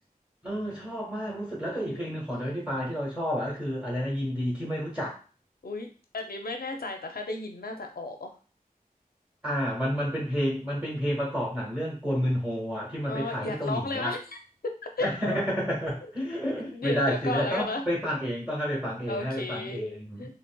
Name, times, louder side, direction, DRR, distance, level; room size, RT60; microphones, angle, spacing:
voice 1, 0.4-5.2 9.4-14.2 15.0-20.3, equal, 10° right, -4 dB, 1.2 m, -30 dB
voice 2, 1.7-2.2 5.6-5.9 6.1-8.3 13.1-14.2 14.6-15.4 16.2-16.4 16.7-17.8 19.1-20.3, left 2 dB, 85° left, 4 dB, 0.5 m, -34 dB
3.8 x 2.0 x 2.2 m, 0.37 s
wide cardioid pair, 50°, 15 cm